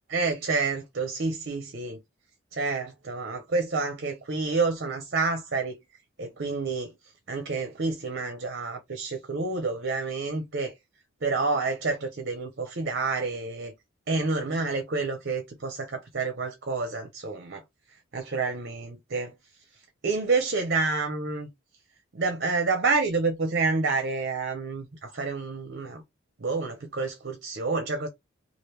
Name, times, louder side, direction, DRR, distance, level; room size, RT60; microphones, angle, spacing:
voice 1, 0.1-2.0 2.5-5.8 6.2-6.9 7.3-10.7 11.2-13.7 14.1-17.6 18.1-19.3 20.0-21.5 22.1-26.0 26.4-28.1, right 3 dB, 55° right, 0.6 m, -28 dB
2.9 x 2.4 x 3.2 m
head